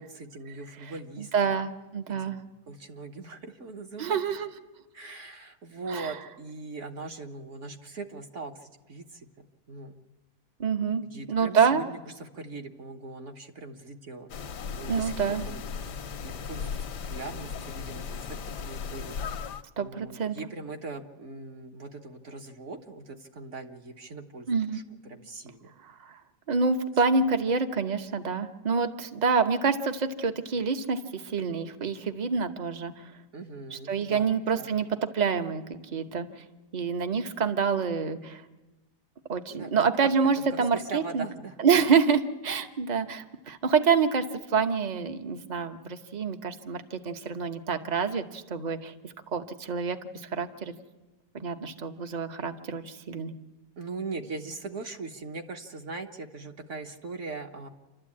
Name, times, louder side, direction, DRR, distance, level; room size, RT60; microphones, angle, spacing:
voice 1, 0.0-1.6 2.2-4.2 4.9-10.0 11.1-14.3 14.8-15.6 16.2-18.4 18.6-19.1 19.8-25.7 33.3-34.7 39.5-39.7 40.0-41.6 53.8-57.7, right 3 dB, 50° right, 3 dB, 1.4 m, -41 dB
voice 2, 1.2-2.4 4.0-4.5 5.9-6.1 10.6-11.0 11.3-11.8 14.9-15.4 19.8-20.4 24.5-24.8 25.8-26.2 26.5-33.1 33.7-34.9 35.1-36.3 36.7-38.4 39.3-41.2 41.6-44.2 44.5-50.7 51.3-53.3, right 5 dB, 35° right, 7 dB, 0.9 m, -27 dB
sound 1, 14.3-19.6, left 6 dB, 75° left, 1.5 m, -36 dB
28.0 x 12.5 x 8.6 m, 1.2 s
omnidirectional pair, 1.8 m